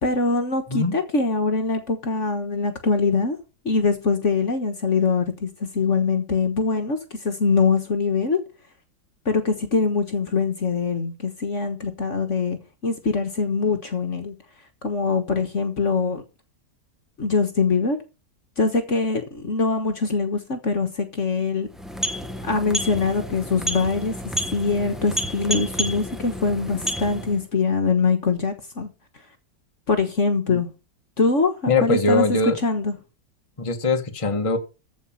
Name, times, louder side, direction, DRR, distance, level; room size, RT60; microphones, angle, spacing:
voice 1, 0.0-3.4 3.6-8.4 9.2-14.3 14.8-16.2 17.2-18.0 18.6-21.7 22.4-24.1 24.5-28.9 29.9-30.7 31.2-32.9, left 4 dB, 45° left, 1.6 m, -23 dB
sound 1, 21.7-27.5, equal, ahead, 0.9 m, -30 dB
voice 2, 31.7-32.6 33.6-34.6, left 3 dB, 20° left, 1.4 m, -22 dB
14.5 x 5.1 x 7.2 m
omnidirectional pair, 1.8 m